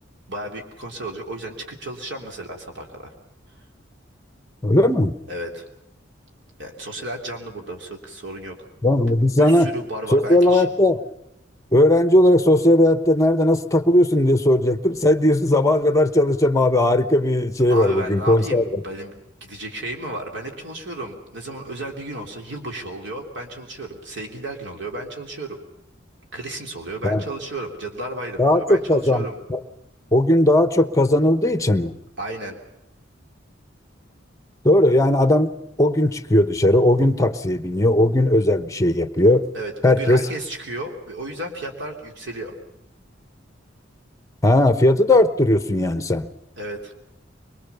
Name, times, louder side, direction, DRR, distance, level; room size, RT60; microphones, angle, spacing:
voice 1, 0.3-3.1 5.3-5.7 6.6-8.6 9.4-10.7 17.7-19.1 19.4-25.6 26.3-29.4 32.2-32.6 39.5-42.5 46.6-46.9, right 1 dB, 65° right, 2 dB, 3.3 m, -33 dB
voice 2, 4.6-5.1 8.8-9.7 10.1-11.0 11.7-18.8 27.0-27.2 28.4-29.6 30.1-31.9 34.6-35.5 35.8-39.5 39.8-40.3 44.4-46.3, left 1 dB, 15° left, 12 dB, 1.0 m, -17 dB
23.5 x 22.5 x 7.0 m, 0.84 s
head